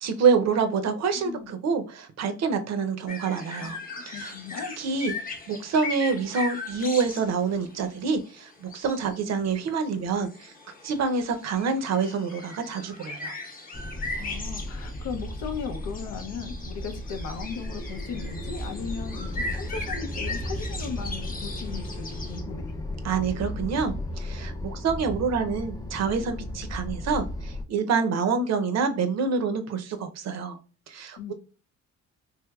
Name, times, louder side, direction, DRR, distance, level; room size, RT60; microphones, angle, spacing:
voice 1, 0.0-4.3 4.8-5.1 5.5-10.5 10.8-13.4 23.0-30.6 30.9-31.2, right 5 dB, 60° right, 0.6 m, -27 dB
sound 1, 3.1-22.4, left 3 dB, 30° left, 0.8 m, -39 dB
voice 2, 3.6-4.8 14.1-22.7 31.2-31.3, left 6 dB, 85° left, 0.6 m, -37 dB
sound 2, 13.7-27.6, left 1 dB, 15° left, 0.3 m, -35 dB
3.3 x 2.9 x 2.3 m
cardioid pair, 90°, 30 cm